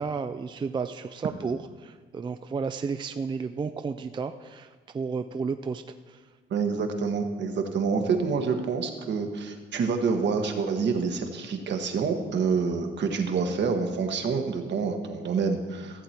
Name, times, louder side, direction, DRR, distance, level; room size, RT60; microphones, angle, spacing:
voice 1, 0.0-6.2, right 5 dB, 25° right, 9 dB, 0.4 m, -32 dB
voice 2, 6.5-16.0, right 5 dB, 65° right, 5 dB, 1.3 m, -27 dB
14.0 x 7.7 x 4.3 m, 1.4 s
cardioid pair, 90°, 20 cm